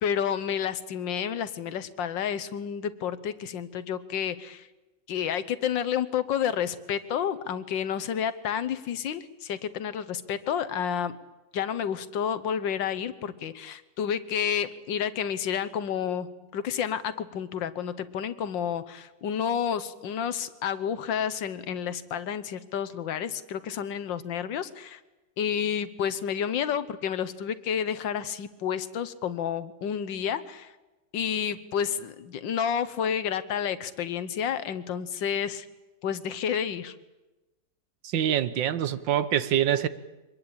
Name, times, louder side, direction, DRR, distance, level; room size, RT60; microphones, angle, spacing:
voice 1, 0.0-4.7 5.1-11.2 11.5-25.0 25.4-30.7 31.1-35.7 36.0-36.9, left 8 dB, 90° left, 1.8 m, -30 dB
voice 2, 38.0-39.9, right 10 dB, 90° right, 1.7 m, -25 dB
24.5 x 20.5 x 8.8 m
omnidirectional pair, 1.9 m